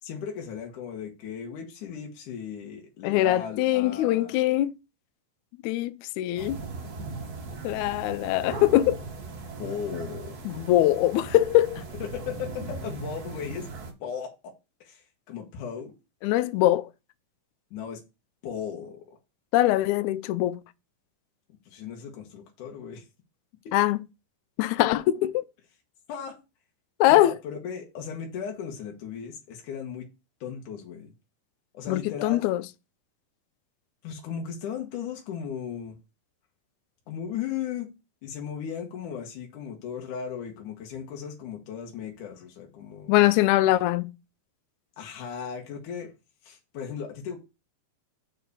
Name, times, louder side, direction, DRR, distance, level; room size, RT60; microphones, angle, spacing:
voice 1, 0.0-4.3 9.6-10.4 12.0-13.7 14.0-14.5 14.8-15.9 17.7-18.0 18.4-19.2 21.7-23.0 23.6-23.8 26.1-26.4 27.1-30.1 30.4-31.1 31.7-32.5 34.0-36.0 37.1-37.9 38.2-43.2 45.0-46.1 46.4-47.4, left 7 dB, 65° left, 2.7 m, -36 dB
voice 2, 3.0-4.7 5.6-6.6 7.6-9.0 10.4-11.8 16.2-16.9 19.5-20.6 23.7-24.0 24.6-25.4 27.0-27.3 31.9-32.6 43.1-44.1, left 15 dB, 85° left, 1.7 m, -22 dB
sound 1, 6.4-13.9, right 3 dB, 70° right, 0.9 m, -38 dB
6.0 x 4.7 x 6.6 m
omnidirectional pair, 4.0 m